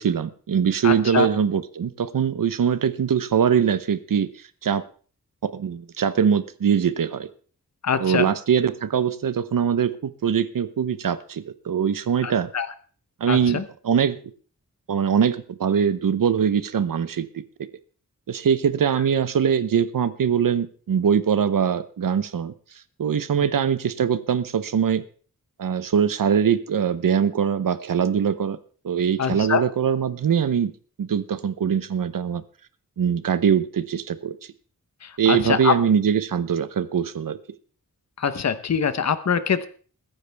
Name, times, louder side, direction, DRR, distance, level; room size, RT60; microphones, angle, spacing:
voice 1, 0.0-4.3 4.6-4.8 5.4-7.3 8.0-12.5 13.2-14.2 14.9-17.3 18.3-22.5 23.0-25.0 25.6-28.6 28.8-30.7 31.0-32.4 33.0-34.3 35.2-37.4, right 7 dB, 75° right, 14 dB, 0.9 m, -22 dB
voice 2, 0.8-1.3 7.8-8.3 12.2-12.7 13.3-13.6 29.2-29.6 35.0-35.8 38.2-39.7, left 6 dB, 55° left, 12 dB, 0.9 m, -24 dB
21.5 x 9.9 x 3.5 m, 0.42 s
wide cardioid pair, 130°, 33 cm